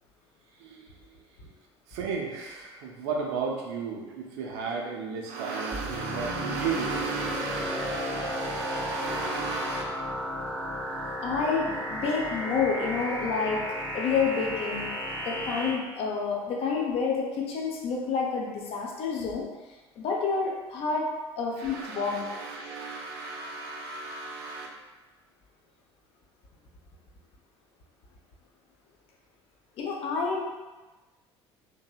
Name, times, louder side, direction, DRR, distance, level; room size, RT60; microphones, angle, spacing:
voice 1, 0.5-1.2 1.9-9.8 21.6-24.7, right 4 dB, 55° right, 0 dB, 0.5 m, -33 dB
sound 1, 5.7-15.7, left 1 dB, 10° left, 0.8 m, -34 dB
voice 2, 11.2-13.7 13.9-14.9 15.3-19.5 20.0-21.1 21.4-22.3 29.8-30.4, left 5 dB, 45° left, -1 dB, 0.5 m, -29 dB
2.7 x 2.7 x 2.2 m, 1.2 s
figure-of-eight pair, 60°, 14 cm